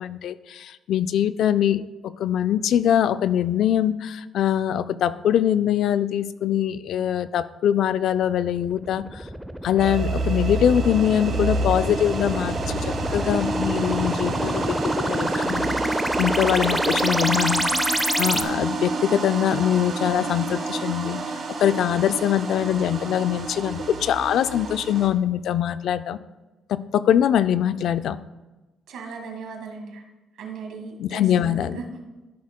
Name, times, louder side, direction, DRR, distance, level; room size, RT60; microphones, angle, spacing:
voice 1, 0.0-9.2 9.6-12.6 13.1-15.7 16.2-17.6 18.2-21.2 21.6-26.2 26.7-28.2 31.0-31.8, left 10 dB, 75° left, 14 dB, 0.3 m, -23 dB
sound 1, 8.6-18.4, equal, 5° right, 0.5 m, -27 dB
sound 2, 9.8-25.1, right 3 dB, 55° right, 1.3 m, -29 dB
voice 2, 28.9-30.0 30.4-32.0, right 4 dB, 80° right, 3 dB, 1.6 m, -37 dB
13.0 x 6.4 x 2.2 m, 1.1 s
cardioid pair, 90°, 0 cm